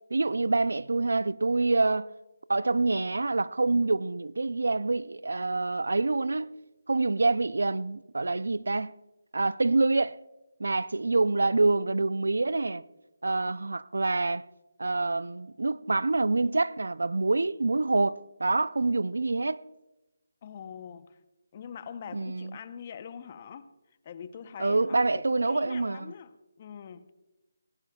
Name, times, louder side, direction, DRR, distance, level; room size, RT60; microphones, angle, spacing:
voice 1, 0.1-2.1 2.5-6.5 6.9-8.9 9.3-10.2 10.6-12.8 13.2-14.5 14.8-19.6 22.1-22.6 24.6-26.1, right 3 dB, 75° right, 0.4 m, -26 dB
voice 2, 20.4-21.2 21.5-23.7 24.0-27.1, left 7 dB, 35° left, 0.7 m, -43 dB
18.0 x 16.5 x 2.3 m
figure-of-eight pair, 155°, 0 cm